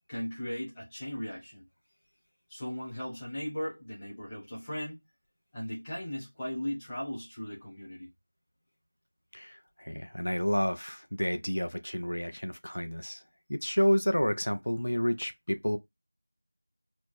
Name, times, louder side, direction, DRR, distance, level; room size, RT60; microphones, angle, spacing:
voice 1, 0.1-1.7 2.5-5.0 5.5-8.1, equal, 5° left, 0.9 m, -37 dB
voice 2, 9.3-13.2 13.5-15.8, equal, 55° left, 0.8 m, -30 dB
4.5 x 2.2 x 4.3 m
figure-of-eight pair, 175°, 0 cm